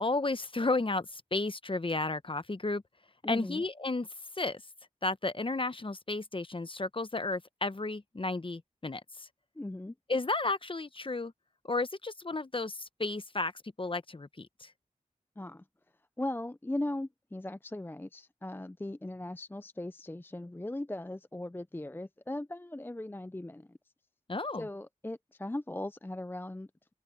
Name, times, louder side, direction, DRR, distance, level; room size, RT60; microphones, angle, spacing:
voice 1, 0.0-2.8 3.3-4.1 4.4-4.6 5.0-9.3 10.1-11.3 11.6-14.7 24.3-24.7, left 3 dB, 40° left, 1.0 m, -33 dB
voice 2, 3.2-3.6 9.6-9.9 15.4-15.6 16.2-23.8 24.6-26.9, left 1 dB, 15° left, 0.5 m, -38 dB
open air
cardioid pair, 45°, 14 cm